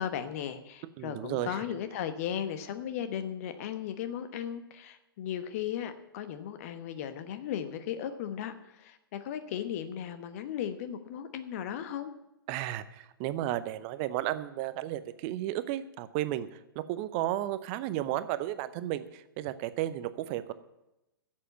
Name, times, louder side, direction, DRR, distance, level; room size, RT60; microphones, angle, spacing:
voice 1, 0.0-12.1, left 9 dB, 40° left, 10 dB, 1.1 m, -36 dB
voice 2, 1.0-1.8 12.5-16.5 16.7-20.5, right 13 dB, 30° right, 14 dB, 0.7 m, -33 dB
11.0 x 7.6 x 9.0 m, 0.92 s
figure-of-eight pair, 115°, 12 cm